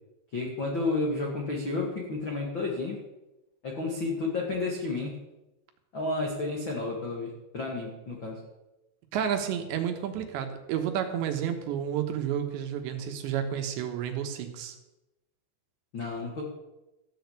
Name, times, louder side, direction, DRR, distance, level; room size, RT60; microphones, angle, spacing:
voice 1, 0.3-3.0 3.6-5.1 5.9-8.4 15.9-16.4, left 3 dB, 65° left, -1 dB, 1.2 m, -31 dB
voice 2, 9.1-14.8, right 9 dB, 75° right, 5 dB, 3.4 m, -31 dB
14.0 x 6.5 x 8.2 m, 0.97 s
omnidirectional pair, 5.3 m